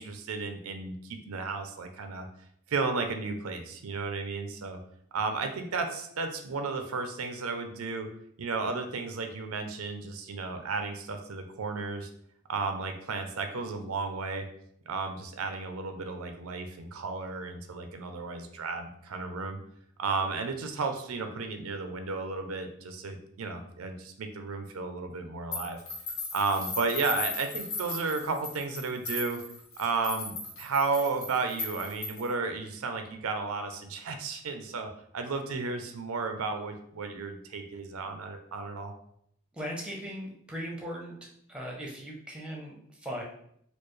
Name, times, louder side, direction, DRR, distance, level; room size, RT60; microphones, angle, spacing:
voice 1, 0.0-2.3 2.7-4.8 5.1-8.1 8.4-12.1 12.5-14.4 14.9-19.6 20.0-25.8 26.3-29.4 29.8-38.9, right 4 dB, 85° right, 6 dB, 0.5 m, -33 dB
sound 1, 25.5-32.4, left 3 dB, 75° left, 1.4 m, -37 dB
voice 2, 39.5-41.2 41.5-43.2, equal, 5° right, -2 dB, 0.6 m, -38 dB
4.4 x 2.3 x 3.1 m, 0.70 s
head